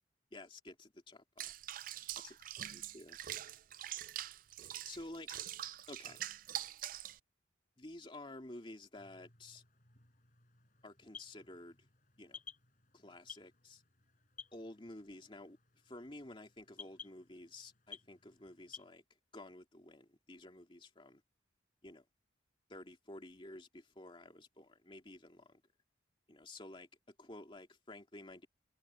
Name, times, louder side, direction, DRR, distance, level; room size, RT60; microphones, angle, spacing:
voice 1, 0.3-1.5 2.1-3.2 4.9-5.3 5.9-6.2 7.8-9.6 10.8-11.8 12.2-12.4 12.9-13.8 14.5-15.6 15.8-19.0 19.3-21.2 21.8-22.0 22.7-25.6 26.3-28.5, left 1 dB, 25° left, 2.6 m, -52 dB
Water / Bathtub (filling or washing), 1.4-7.2, right 12 dB, 45° right, 0.4 m, -44 dB
sound 1, 9.0-18.9, left 6 dB, 45° left, 4.5 m, -57 dB
head